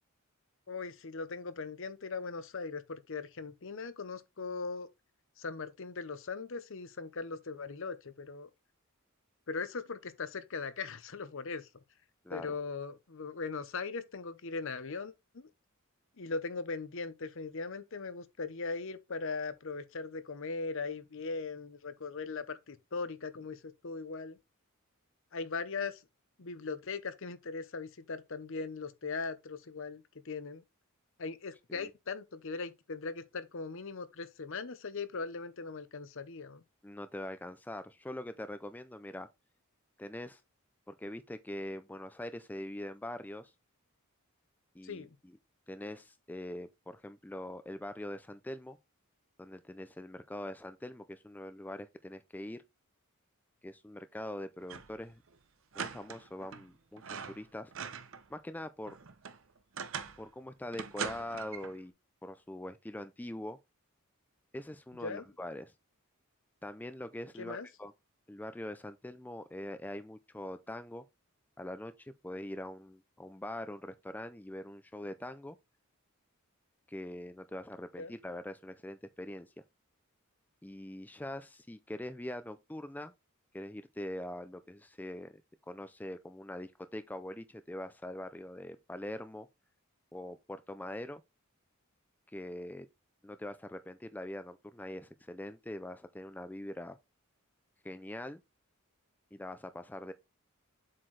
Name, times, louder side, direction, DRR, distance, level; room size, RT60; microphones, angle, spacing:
voice 1, 0.7-4.9 5.4-8.5 9.5-11.7 12.3-15.5 16.2-24.4 25.3-26.0 26.4-30.6 31.2-36.6 44.8-45.2 65.0-65.3 67.4-67.7 78.0-78.1, left 4 dB, 60° left, 0.8 m, -39 dB
voice 2, 36.8-39.3 40.0-40.4 40.9-43.5 44.7-45.4 45.7-48.8 49.4-52.6 53.6-55.2 55.8-57.7 58.3-58.9 60.2-61.9 62.2-63.6 64.5-65.7 66.6-67.9 68.3-71.0 71.6-75.6 76.9-79.5 80.6-83.1 83.5-85.4 85.7-89.5 90.1-91.2 92.3-92.9 93.2-97.0 97.8-98.4 99.3-100.1, left 1 dB, 10° left, 0.4 m, -43 dB
sound 1, 54.6-55.0 55.3-55.4 55.7-56.7 57.0-58.3 58.6-60.3 60.7-61.8, right 6 dB, 60° right, 0.8 m, -41 dB
7.5 x 4.4 x 3.2 m
head